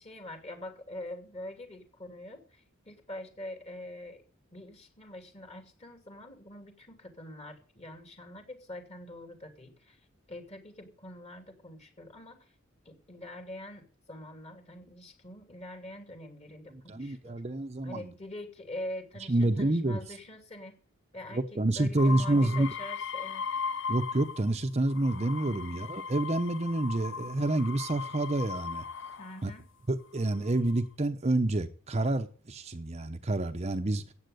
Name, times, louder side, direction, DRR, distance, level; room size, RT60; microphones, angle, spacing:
voice 1, 0.0-4.2 4.5-10.0 10.3-12.5 12.8-17.4 17.8-20.8 21.1-23.4 25.5-25.8 29.2-29.7, left 1 dB, 30° left, 2.7 m, -44 dB
voice 2, 16.9-18.1 19.3-20.0 21.3-22.7 23.9-28.8 29.4-29.5 29.9-34.1, right 2 dB, 30° right, 0.8 m, -28 dB
sound 1, 22.0-24.5 24.9-29.4 30.2-30.7, left 6 dB, 60° left, 0.6 m, -38 dB
13.5 x 8.8 x 7.8 m
head